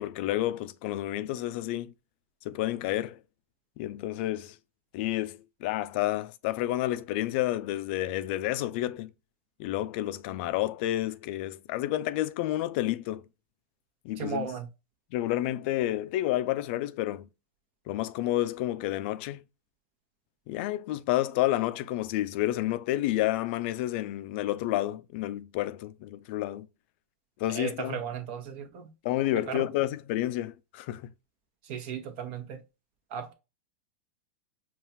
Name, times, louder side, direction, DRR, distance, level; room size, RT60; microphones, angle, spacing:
voice 1, 0.0-1.9 2.4-3.2 3.8-4.6 4.9-9.1 9.6-13.2 14.0-14.5 15.1-17.3 17.9-19.4 20.5-26.7 27.4-28.0 29.0-31.0, left 14 dB, 55° left, 0.4 m, -30 dB
voice 2, 14.2-14.7 27.5-28.9 29.5-29.7 31.7-32.6 33.1-33.3, right 7 dB, 55° right, 1.0 m, -35 dB
5.5 x 2.3 x 2.6 m
hypercardioid pair, 110°, 7 cm